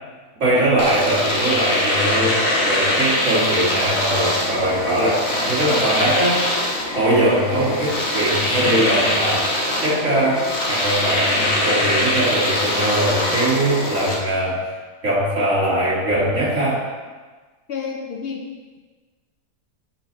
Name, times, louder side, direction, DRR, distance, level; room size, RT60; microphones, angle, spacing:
voice 1, 0.4-6.6 6.9-9.5 9.8-14.7 15.0-16.8, right 1 dB, 55° right, -7 dB, 2.4 m, -21 dB
Domestic sounds home sounds, 0.8-14.2, left 1 dB, 50° left, 1.2 m, -22 dB
voice 2, 17.7-18.5, left 6 dB, 65° left, 2 dB, 0.6 m, -29 dB
9.1 x 4.0 x 4.1 m, 1.3 s
omnidirectional pair, 1.6 m